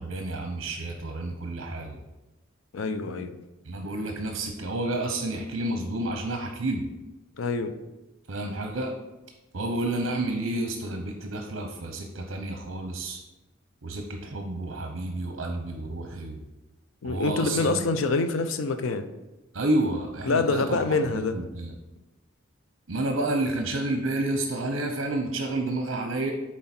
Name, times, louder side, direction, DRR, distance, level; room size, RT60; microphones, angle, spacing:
voice 1, 0.0-2.0 3.6-6.9 8.3-8.9 9.5-13.2 13.8-16.4 17.0-17.8 19.5-20.8 21.1-21.7 22.9-26.3, right 2 dB, 75° right, 3 dB, 0.8 m, -30 dB
voice 2, 2.7-3.4 7.4-7.8 17.0-19.1 20.2-21.4, left 3 dB, 85° left, 9 dB, 0.6 m, -26 dB
7.5 x 4.3 x 4.4 m, 1.0 s
head